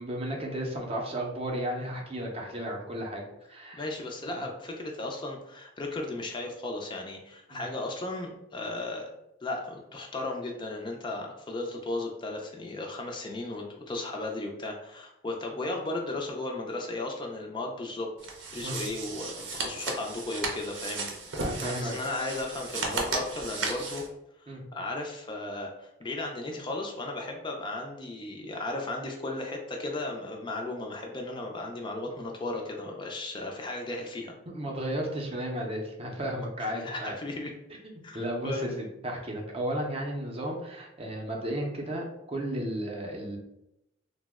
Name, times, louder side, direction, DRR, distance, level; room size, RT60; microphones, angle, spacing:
voice 1, 0.0-3.2 3.5-3.8 7.5-7.6 18.6-18.8 21.4-21.9 24.5-24.6 34.5-37.1 38.1-43.4, right 1 dB, 30° right, 0 dB, 0.6 m, -33 dB
voice 2, 3.8-9.1 9.4-18.1 18.5-24.0 24.4-34.3 36.6-37.5 38.0-38.7, left 2 dB, 25° left, 1 dB, 0.4 m, -35 dB
sound 1, 18.2-24.1, right 3 dB, 80° right, 0.6 m, -35 dB
2.9 x 2.0 x 3.4 m, 0.85 s
head